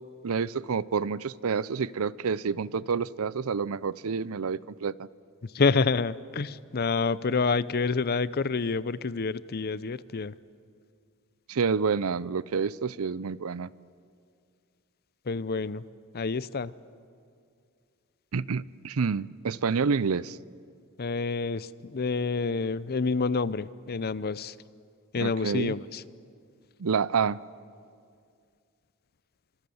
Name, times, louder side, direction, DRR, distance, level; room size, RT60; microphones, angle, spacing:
voice 1, 0.2-5.1 11.5-13.7 18.3-20.4 25.2-25.8 26.8-27.4, right 5 dB, 75° right, 20 dB, 0.5 m, -28 dB
voice 2, 5.5-10.3 15.3-15.8 16.1-16.7 21.0-24.5 25.1-26.0, left 4 dB, 45° left, 18 dB, 0.6 m, -28 dB
28.0 x 26.0 x 7.1 m, 2.3 s
head